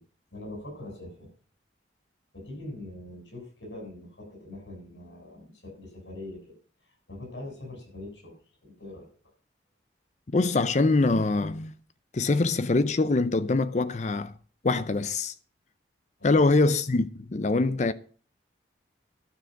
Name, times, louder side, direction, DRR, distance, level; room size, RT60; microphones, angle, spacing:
voice 1, 0.3-1.3 2.3-6.5 7.1-8.3 8.6-9.1 16.2-16.4, left 1 dB, 90° left, 7.7 m, -42 dB
voice 2, 10.3-11.7 12.1-14.3 14.6-15.3 16.2-17.9, left 3 dB, 40° left, 0.5 m, -24 dB
12.5 x 6.8 x 7.6 m
head